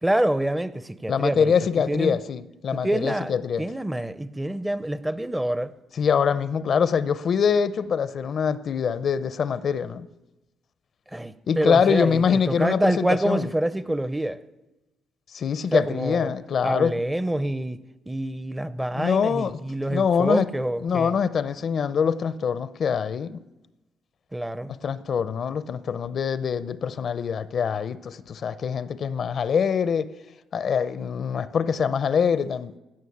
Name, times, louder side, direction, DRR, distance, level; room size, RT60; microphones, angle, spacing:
voice 1, 0.0-1.5 1.9-2.2 2.7-5.7 11.1-14.4 15.7-16.3 16.6-17.8 18.1-21.2 24.3-24.7, right 1 dB, 10° right, 0.6 m, -26 dB
voice 2, 1.1-3.6 6.0-10.1 11.5-13.5 15.3-16.9 18.9-19.6 19.9-20.5 20.8-23.4 24.8-30.1 30.5-32.7, left 7 dB, 55° left, 0.6 m, -24 dB
16.0 x 6.2 x 8.5 m
cardioid pair, 90°, 0 cm